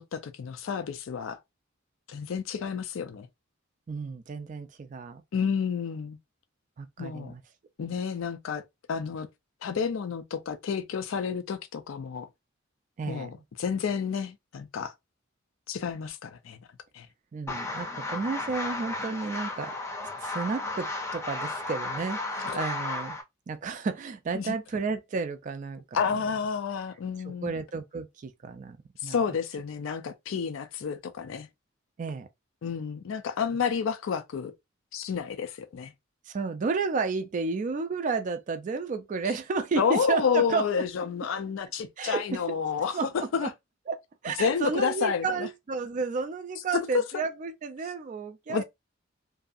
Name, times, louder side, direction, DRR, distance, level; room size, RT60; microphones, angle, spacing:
voice 1, 0.0-1.4 2.1-3.3 5.3-6.2 7.0-7.3 7.8-8.6 8.9-9.3 9.6-12.3 13.1-14.9 15.7-16.6 16.9-17.1 22.5-22.6 24.3-24.5 25.9-27.5 29.0-31.5 32.6-34.5 34.9-35.9 39.8-43.5 44.4-45.5 48.5-48.6, left 6 dB, 80° left, 0.4 m, -30 dB
voice 2, 3.9-5.2 6.8-7.4 13.0-13.4 17.3-19.7 20.2-23.2 23.5-25.8 27.3-28.8 29.0-29.2 32.0-32.3 36.3-40.6 42.0-42.2 42.9-43.5 43.9-48.6, right 4 dB, 40° right, 0.3 m, -32 dB
sound 1, 17.5-23.2, left 2 dB, 15° left, 0.6 m, -34 dB
2.6 x 2.3 x 2.5 m
head